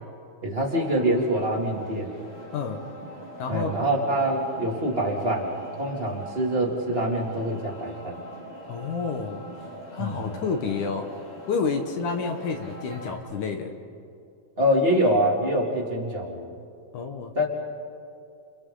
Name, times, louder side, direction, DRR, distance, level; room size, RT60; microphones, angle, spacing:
voice 1, 0.4-2.1 3.5-5.5 5.8-8.2 10.0-10.2 14.6-16.5 17.3-17.5, right 1 dB, 15° right, -3 dB, 2.4 m, -25 dB
sound 1, 0.7-13.2, right 1 dB, 35° left, 5.0 m, -43 dB
voice 2, 3.4-3.8 8.7-9.4 9.9-11.1 11.5-13.7 16.9-17.3, left 5 dB, 65° left, 5 dB, 2.4 m, -29 dB
30.0 x 29.0 x 3.9 m, 2.5 s
omnidirectional pair, 4.3 m